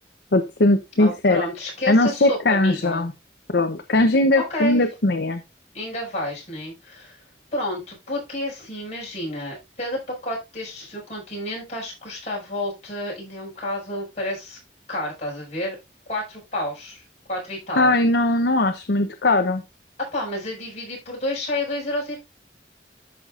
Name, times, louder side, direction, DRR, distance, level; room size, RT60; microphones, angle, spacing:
voice 1, 0.3-1.5 1.9-3.1 3.5-5.4 17.8-19.6, left 2 dB, 65° left, 7 dB, 0.8 m, -19 dB
voice 2, 1.0-3.1 4.3-4.8 5.7-7.2 7.5-14.6 14.9-15.8 16.1-17.0 17.3-17.9 20.1-22.2, left 1 dB, 40° left, -2 dB, 5.5 m, -30 dB
13.0 x 5.8 x 2.5 m, 0.24 s
head